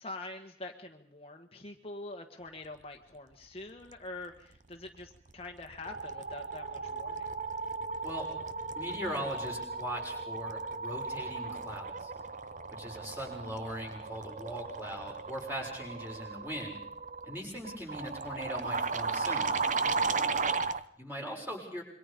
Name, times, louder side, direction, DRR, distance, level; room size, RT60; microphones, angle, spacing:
voice 1, 0.0-7.3 20.1-20.8, left 2 dB, 35° left, 5 dB, 1.4 m, -45 dB
sound 1, 5.0-5.3 5.6-20.8, right 4 dB, 45° right, 0.9 m, -36 dB
voice 2, 8.7-12.1 12.7-16.8 17.3-19.5 21.0-21.8, equal, 10° right, -1 dB, 6.6 m, -40 dB
27.0 x 24.0 x 5.2 m, 0.66 s
head